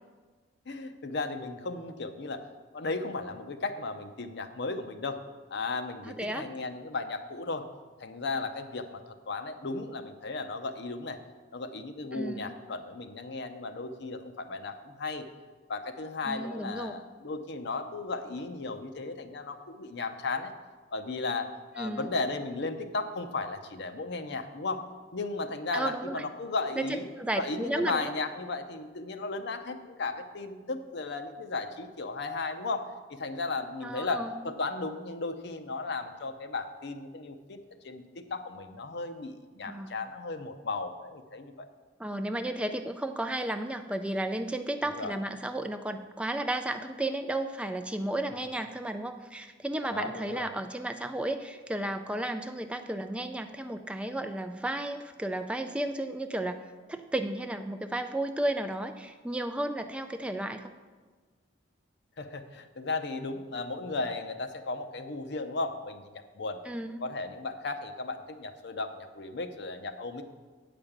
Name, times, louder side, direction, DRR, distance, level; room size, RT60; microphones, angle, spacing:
voice 1, 0.7-2.4 2.7-5.2 5.5-7.7 8.0-11.2 11.5-15.3 15.7-20.5 20.9-21.5 21.7-24.8 25.1-27.1 27.4-37.6 37.8-41.7 44.8-45.1 49.9-50.5 62.2-66.6 67.0-70.2, left 3 dB, 65° left, 8 dB, 0.7 m, -35 dB
voice 2, 6.1-6.5 12.1-12.5 16.3-16.9 21.8-22.1 25.7-26.2 26.8-28.1 33.8-34.3 39.7-39.9 42.0-60.7 66.6-67.0, right 1 dB, 5° right, 7 dB, 0.3 m, -33 dB
9.0 x 5.1 x 7.2 m, 1.4 s
head